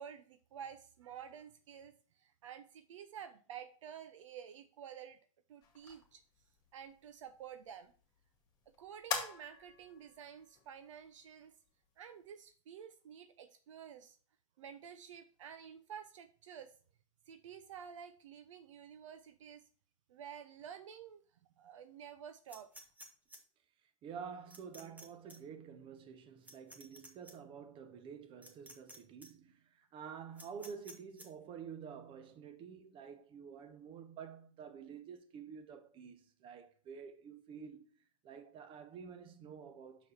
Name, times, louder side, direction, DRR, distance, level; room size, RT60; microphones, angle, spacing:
voice 1, 0.0-5.2 5.5-6.2 6.7-7.9 8.7-11.5 12.0-14.2 14.6-16.7 17.3-19.6 20.1-21.2 21.6-22.7, right 8 dB, 65° right, 0.8 m, -51 dB
sound 1, 5.6-12.5, left 6 dB, 20° left, 2.1 m, -47 dB
sound 2, 22.5-23.4 24.5-25.0 25.3-25.4 26.4-27.3 28.4-29.0 29.2-29.3 30.4-31.3, equal, 10° right, 1.6 m, -53 dB
voice 2, 24.0-38.0 38.2-40.1, right 7 dB, 30° right, 1.1 m, -49 dB
6.5 x 6.2 x 4.2 m
hypercardioid pair, 110°, 17 cm